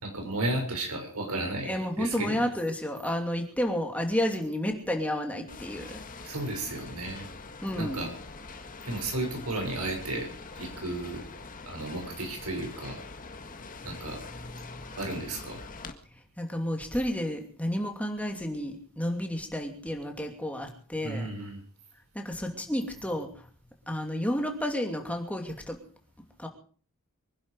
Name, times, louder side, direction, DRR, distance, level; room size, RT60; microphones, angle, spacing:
voice 1, 0.0-1.7 2.0-2.4 6.2-7.3 7.7-8.1 8.8-10.3 10.5-11.2 11.7-13.0 13.8-14.2 15.0-15.6 21.0-21.6, right 2 dB, 80° right, 3 dB, 6.4 m, -33 dB
voice 2, 1.6-6.3 7.6-8.1 13.8-14.0 14.4-15.0 16.1-21.3 22.1-23.5 23.9-25.8 26.4-26.5, equal, 5° left, 3 dB, 2.8 m, -31 dB
sound 1, 5.5-15.9, left 3 dB, 40° left, 1.8 m, -44 dB
24.5 x 11.0 x 4.9 m, 0.44 s
head